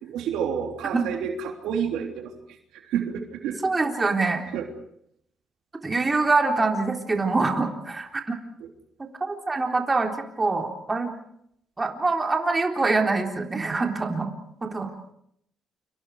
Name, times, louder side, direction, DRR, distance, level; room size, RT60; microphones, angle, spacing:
voice 1, 0.0-3.6 4.4-4.7 7.2-7.3 8.6-8.7, right 8 dB, 90° right, 4 dB, 3.3 m, -30 dB
voice 2, 3.6-4.4 5.8-8.3 9.0-11.1 11.8-14.3 14.6-14.9, right 3 dB, 25° right, 3 dB, 3.8 m, -25 dB
29.5 x 25.5 x 4.9 m, 0.71 s
cardioid pair, 90°, 0 cm